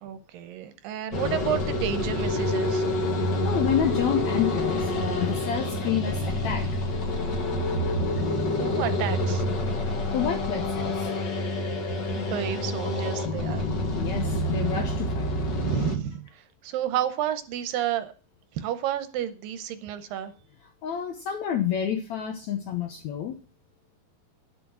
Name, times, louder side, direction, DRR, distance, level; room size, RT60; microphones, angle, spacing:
voice 1, 0.0-2.8 8.2-9.4 12.2-13.7 15.6-18.1 18.5-20.3, right 10 dB, 80° right, 2.4 m, -31 dB
sound 1, 1.1-16.0, left 1 dB, 45° left, 1.5 m, -27 dB
voice 2, 3.4-7.5 10.1-11.1 13.9-15.3 20.8-23.4, left 9 dB, 70° left, 1.7 m, -29 dB
10.5 x 7.3 x 6.0 m
omnidirectional pair, 4.3 m